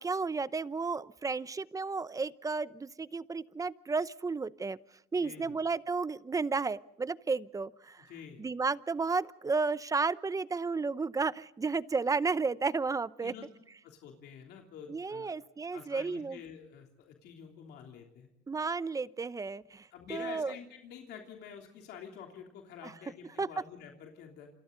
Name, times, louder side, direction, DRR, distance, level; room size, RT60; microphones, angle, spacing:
voice 1, 0.0-4.8 5.1-8.1 8.4-13.3 14.9-16.4 18.5-20.5 22.8-22.9 23.4-23.5, right 4 dB, 20° right, 17 dB, 0.7 m, -33 dB
voice 2, 5.2-5.6 8.0-8.4 13.2-13.5 13.8-15.3 15.7-18.3 19.9-24.5, left 7 dB, 80° left, 2 dB, 3.3 m, -48 dB
28.0 x 27.5 x 4.0 m, 0.89 s
cardioid pair, 110°, 17 cm